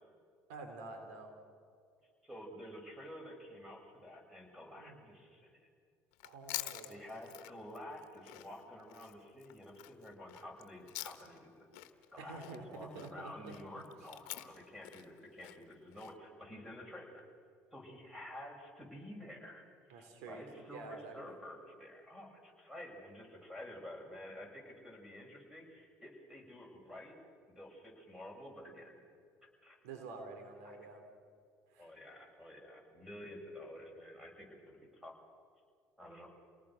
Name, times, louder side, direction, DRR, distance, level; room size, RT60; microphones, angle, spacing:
voice 1, 0.5-1.3 4.8-5.1 6.2-7.0 12.2-13.5 19.9-21.4 29.8-31.0 31.7-31.9, right 3 dB, 85° right, 5 dB, 3.2 m, -48 dB
voice 2, 2.2-5.7 6.9-11.7 12.1-17.2 17.7-27.2 27.5-29.0 29.6-29.8 30.6-30.8 31.8-35.2 36.0-36.3, left 1 dB, 5° right, 1 dB, 7.7 m, -50 dB
Chewing mastication, 6.1-11.5 11.7-16.1, left 18 dB, 80° left, 1.2 m, -48 dB
28.5 x 19.0 x 6.4 m, 2.2 s
supercardioid pair, 70°, 8 cm